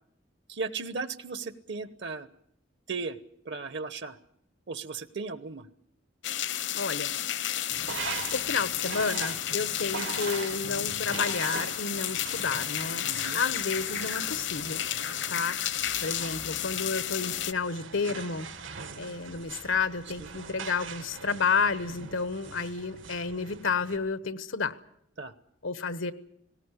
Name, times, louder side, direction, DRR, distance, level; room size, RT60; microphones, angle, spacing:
voice 1, 0.5-2.3 2.9-3.2 3.4-4.2 4.7-5.7 13.0-13.4 25.2-25.3, right 4 dB, 65° right, 13 dB, 1.0 m, -36 dB
sound 1, 6.2-17.5, left 11 dB, 65° left, 0.8 m, -32 dB
voice 2, 6.7-7.1 8.3-14.8 15.3-15.6 16.0-18.5 18.9-24.8 25.6-26.1, left 5 dB, 90° left, 13 dB, 1.2 m, -31 dB
sound 2, 7.7-24.0, right 5 dB, 90° right, 2.0 m, -42 dB
19.5 x 17.5 x 9.8 m, 0.73 s
head